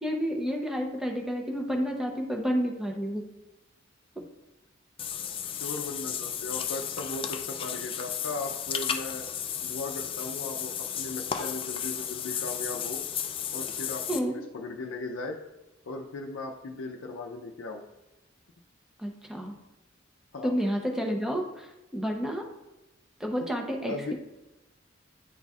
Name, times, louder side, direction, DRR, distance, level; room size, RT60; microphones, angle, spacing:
voice 1, 0.0-3.2 14.1-14.4 19.0-19.6 20.4-22.4 23.2-24.1, equal, 5° right, 1 dB, 0.7 m, -30 dB
Water / Bathtub (filling or washing), 5.0-14.2, left 8 dB, 30° left, 0.3 m, -34 dB
voice 2, 5.5-9.3 9.6-13.0 13.5-15.4 15.9-17.8 20.3-20.5 23.8-24.1, left 3 dB, 85° left, 1 dB, 0.5 m, -37 dB
10.0 x 4.0 x 2.4 m, 1.0 s
head